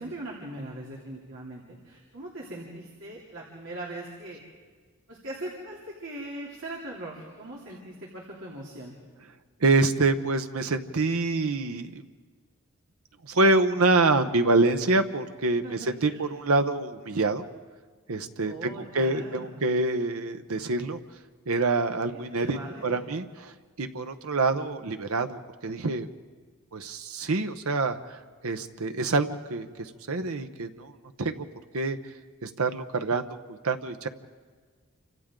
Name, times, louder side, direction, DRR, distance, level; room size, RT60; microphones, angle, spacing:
voice 1, 0.0-4.4 5.1-8.9 15.6-16.3 18.4-19.6 22.1-23.0, right 1 dB, 65° right, -4 dB, 3.1 m, -40 dB
voice 2, 9.6-12.0 13.2-17.5 18.1-21.0 21.5-23.5 23.8-26.1 26.7-30.9 31.2-31.5 31.7-32.0 32.4-33.2 33.5-34.1, right 3 dB, 90° right, 8 dB, 0.9 m, -26 dB
29.0 x 25.5 x 3.8 m, 1.5 s
head